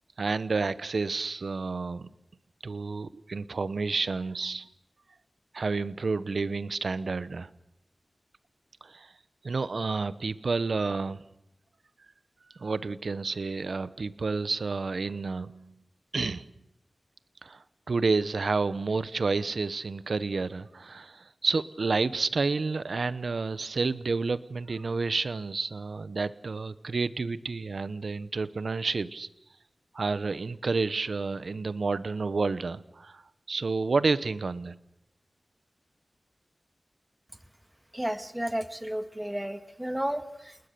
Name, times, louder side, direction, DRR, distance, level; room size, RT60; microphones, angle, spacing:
voice 1, 0.2-2.1 2.6-4.7 5.5-7.5 8.8-9.1 9.4-11.2 12.5-15.7 16.1-16.5 17.4-29.3 29.9-33.2 33.5-34.8, right 4 dB, 75° right, 15 dB, 0.9 m, -30 dB
voice 2, 37.9-40.7, equal, 10° right, 8 dB, 2.0 m, -33 dB
28.5 x 20.0 x 6.8 m, 0.82 s
wide cardioid pair, 50°, 0 cm